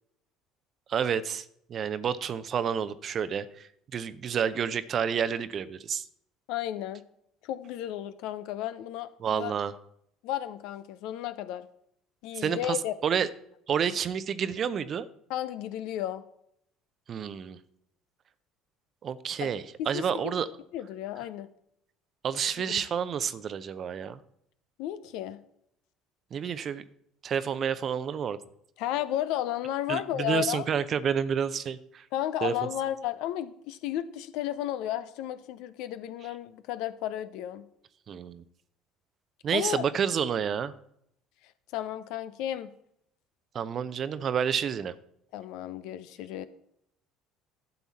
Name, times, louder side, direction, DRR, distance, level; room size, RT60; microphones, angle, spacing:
voice 1, 0.9-1.4 1.7-6.1 9.2-9.7 12.4-12.8 13.0-13.3 13.7-15.1 17.1-17.6 19.0-20.5 22.2-24.2 26.3-26.8 27.2-28.4 29.9-32.0 32.4-32.5 38.1-38.4 39.4-40.7 43.5-44.9, right 7 dB, 45° right, 14 dB, 0.7 m, -29 dB
voice 2, 6.5-7.0 7.4-9.5 10.2-11.7 12.2-12.9 15.3-16.2 19.4-19.5 19.8-20.1 20.7-21.5 22.6-22.8 24.8-25.4 28.8-30.6 32.1-37.6 39.5-39.8 41.7-42.7 45.3-46.5, left 12 dB, 65° left, 13 dB, 0.6 m, -33 dB
12.0 x 7.1 x 4.2 m, 0.73 s
hypercardioid pair, 65°, 0 cm